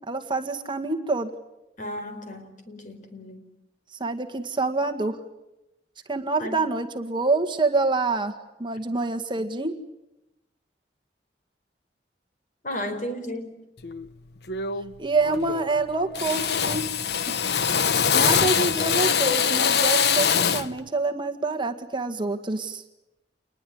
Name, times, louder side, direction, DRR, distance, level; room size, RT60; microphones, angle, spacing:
voice 1, 0.1-1.3 4.0-5.2 6.1-8.3 8.6-9.7 15.0-16.8 17.3-17.4 18.1-22.8, right 3 dB, 25° right, 1.8 m, -26 dB
voice 2, 1.8-3.4 6.4-6.6 12.6-13.6, equal, 45° left, 4.5 m, -34 dB
Drill, 13.8-14.1 14.5-15.0 15.2-15.8 16.1-20.8, left 7 dB, 65° left, 0.9 m, -23 dB
29.0 x 21.0 x 9.6 m
head